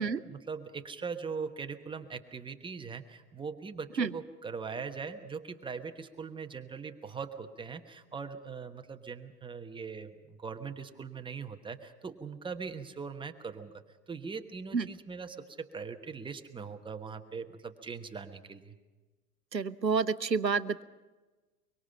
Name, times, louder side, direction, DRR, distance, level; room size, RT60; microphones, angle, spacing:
voice 1, 0.0-13.7 14.1-18.7, right 5 dB, 10° right, 7 dB, 1.2 m, -41 dB
voice 2, 19.5-20.8, right 5 dB, 85° right, 15 dB, 0.9 m, -29 dB
24.0 x 24.0 x 5.8 m, 1.2 s
figure-of-eight pair, 95°, 49 cm